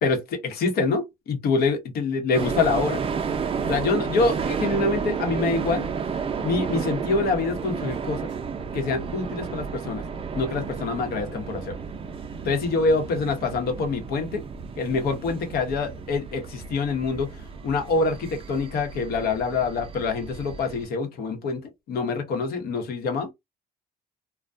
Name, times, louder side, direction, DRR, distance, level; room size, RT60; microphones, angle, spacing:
voice 1, 0.0-3.0 3.7-5.9 6.4-8.2 8.7-10.0 10.3-11.8 12.4-14.4 14.8-17.3 17.6-23.3, left 4 dB, 65° left, 1.0 m, -25 dB
sound 1, 2.3-20.9, right 6 dB, 35° right, 0.5 m, -32 dB
2.3 x 2.2 x 2.5 m
cardioid pair, 110°, 17 cm